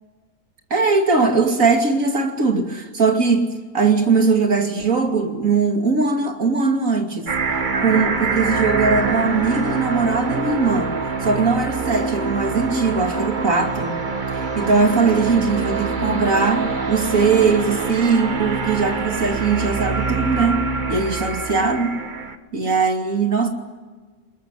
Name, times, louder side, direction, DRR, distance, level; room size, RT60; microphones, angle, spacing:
voice 1, 0.7-3.5 3.7-7.3 7.8-10.9 11.2-13.9 14.3-20.6 20.9-22.0 22.5-23.5, right 4 dB, 65° right, 3 dB, 3.1 m, -20 dB
sound 1, 7.3-22.3, right 4 dB, 35° right, 1.4 m, -25 dB
21.5 x 21.0 x 9.9 m, 1.4 s
omnidirectional pair, 1.5 m